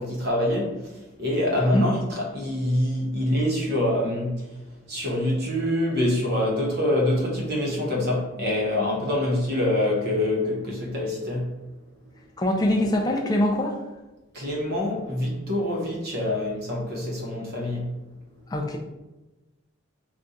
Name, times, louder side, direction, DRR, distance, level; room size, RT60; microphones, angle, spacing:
voice 1, 0.0-4.5 4.9-11.5 14.3-17.9, left 1 dB, 50° right, 0.8 m, -25 dB
voice 2, 12.4-13.8 18.5-18.8, left 1 dB, 20° left, 0.3 m, -23 dB
2.4 x 2.3 x 3.9 m
head